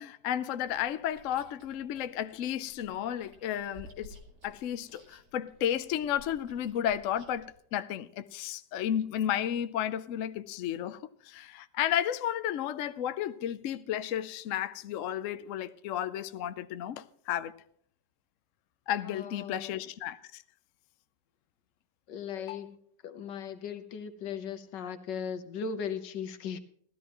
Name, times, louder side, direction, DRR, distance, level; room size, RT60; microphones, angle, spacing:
voice 1, 0.0-4.2 4.4-17.5 18.9-20.4 22.4-22.6, left 10 dB, 60° left, 0.9 m, -33 dB
Chewing mastication, 0.6-7.5, equal, 55° right, 2.6 m, -55 dB
voice 2, 19.0-19.8 22.1-22.7 23.0-26.6, left 7 dB, 90° left, 1.7 m, -38 dB
17.0 x 13.0 x 3.0 m
omnidirectional pair, 1.8 m